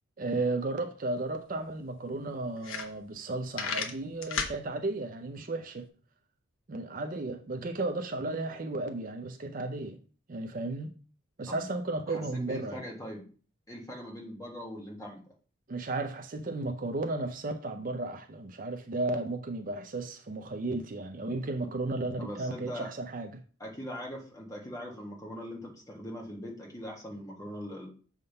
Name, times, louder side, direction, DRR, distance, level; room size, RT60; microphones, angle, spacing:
voice 1, 0.2-5.9 6.7-10.0 10.3-10.9 11.4-12.8 15.7-23.4, right 2 dB, 40° right, 0.5 m, -34 dB
sound 1, 1.2-1.3 1.6-1.7 2.2-2.3 2.6-3.3 3.5-4.6, left 5 dB, 75° left, 1.0 m, -33 dB
voice 2, 12.1-13.2 13.7-15.2 22.2-22.9 23.6-27.9, equal, 15° left, 1.6 m, -41 dB
6.7 x 3.6 x 5.4 m
head